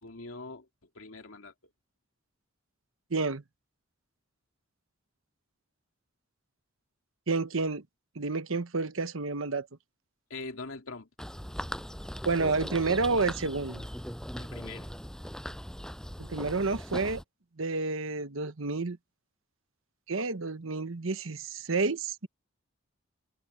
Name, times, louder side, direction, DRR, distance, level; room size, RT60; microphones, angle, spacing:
voice 1, 0.0-0.7 0.9-1.5 10.3-11.1 14.4-14.9, left 3 dB, 70° left, 2.6 m, -42 dB
voice 2, 3.1-3.4 7.3-7.8 8.2-9.7 12.2-13.8 16.2-17.2 17.6-19.0 20.1-22.3, right 3 dB, 70° right, 1.1 m, -30 dB
sound 1, 11.2-17.2, equal, 5° left, 6.9 m, -39 dB
head